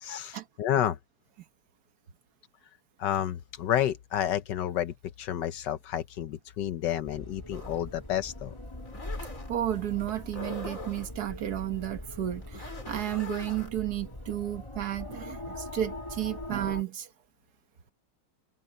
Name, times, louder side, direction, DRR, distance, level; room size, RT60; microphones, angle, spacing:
voice 1, 0.0-1.0 3.0-8.5, left 11 dB, 75° left, 1.4 m, -30 dB
sound 1, 7.0-16.8, left 1 dB, 15° left, 2.7 m, -42 dB
sound 2, 7.5-13.7, left 2 dB, 45° left, 5.0 m, -44 dB
voice 2, 9.5-17.1, right 12 dB, 60° right, 1.7 m, -32 dB
omnidirectional pair, 1.9 m